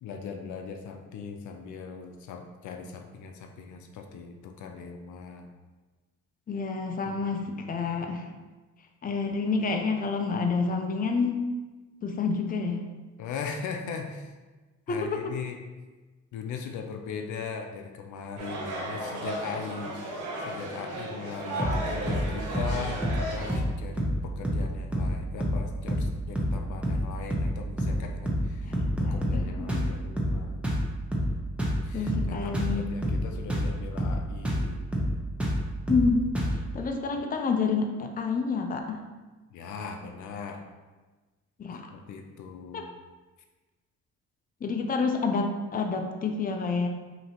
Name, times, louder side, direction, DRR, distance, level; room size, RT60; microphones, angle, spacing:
voice 1, 0.0-5.5 7.0-8.1 13.2-14.3 14.9-15.6 16.3-19.9 20.4-30.7 31.8-34.8 37.1-37.2 39.5-40.6 41.9-42.9, left 6 dB, 75° left, 4 dB, 0.6 m, -39 dB
voice 2, 6.5-7.4 7.7-8.2 9.0-11.4 12.0-12.8 14.9-15.2 28.6-29.8 31.9-32.9 35.9-36.3 36.7-39.0 41.6-41.9 42.7-42.9 44.6-46.9, left 4 dB, 30° left, 4 dB, 0.5 m, -28 dB
sound 1, 18.4-23.6, right 1 dB, 90° right, 0.9 m, -35 dB
sound 2, 21.6-21.8 22.1-22.3 22.5-22.8 23.0-23.2 23.5-23.7 24.0-24.2 24.4-24.7 24.9-25.1 25.4-25.6 25.9-26.1 26.4-26.6 26.8-27.1 27.3-27.5 27.8-28.0 28.3-28.5 28.7-29.4 29.7-29.9 30.2-30.4 30.6-30.9 31.1-31.3 31.6-32.3 32.5-32.8 33.0-33.2 33.5-33.7 34.0-34.2 34.5-34.7 34.9-35.1 35.4-35.6 35.9-36.1 36.4-36.6, equal, 5° right, 0.9 m, -27 dB
5.2 x 2.9 x 2.9 m, 1.2 s
cardioid pair, 90°, 30 cm